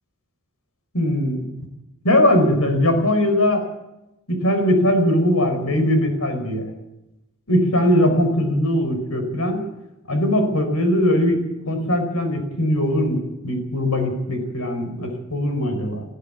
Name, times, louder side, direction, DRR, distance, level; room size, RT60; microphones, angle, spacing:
voice 1, 0.9-1.5 2.0-3.6 4.3-6.7 7.5-9.6 10.1-16.0, left 1 dB, 85° left, 6 dB, 4.7 m, -20 dB
20.5 x 15.0 x 8.7 m, 0.93 s
head